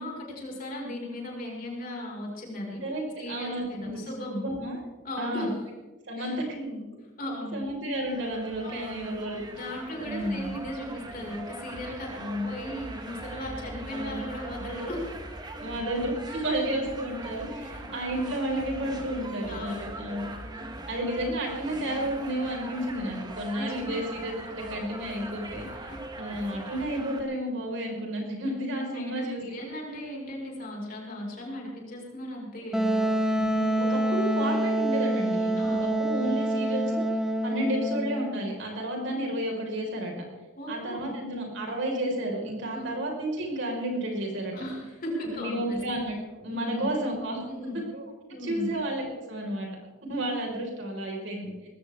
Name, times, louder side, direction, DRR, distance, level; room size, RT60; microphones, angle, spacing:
voice 1, 0.0-2.8 3.2-4.4 5.0-5.5 6.2-6.8 7.2-7.6 8.6-9.1 9.5-12.1 12.4-15.1 16.3-16.4 19.5-19.9 23.6-24.0 28.9-33.1 35.6-35.8 40.6-41.1 42.7-42.9 44.5-45.8 46.5-46.9 47.5-47.8 48.3-48.7 50.0-50.2, left 1 dB, 40° left, -2 dB, 5.1 m, -37 dB
voice 2, 2.8-4.0 4.3-4.8 5.2-5.5 6.1-6.5 7.5-9.4 10.0-10.5 12.1-12.5 13.9-14.2 15.6-20.3 20.9-29.4 33.3-37.1 37.4-40.1 40.7-44.5 45.2-46.1 46.4-47.4 47.9-49.7 50.1-51.7, right 1 dB, 60° right, 0 dB, 4.8 m, -32 dB
sound 1, 8.1-27.2, right 1 dB, 20° right, 1.4 m, -41 dB
Wind instrument woodwind instrument, 32.7-38.3, right 1 dB, ahead, 1.1 m, -26 dB
20.0 x 17.0 x 3.6 m, 1.2 s
head